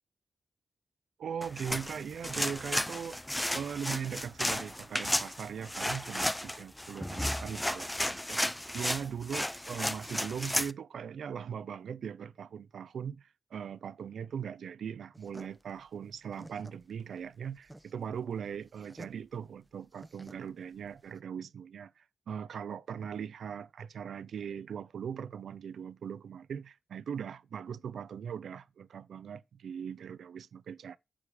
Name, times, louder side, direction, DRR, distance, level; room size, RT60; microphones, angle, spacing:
voice 1, 1.2-3.2 3.5-31.0, right 7 dB, 80° right, 0.6 m, -40 dB
sound 1, 1.4-10.7, left 1 dB, 10° left, 0.6 m, -33 dB
sound 2, 15.1-21.2, right 1 dB, 15° right, 0.9 m, -53 dB
9.2 x 5.1 x 6.6 m
supercardioid pair, 45°, 0 cm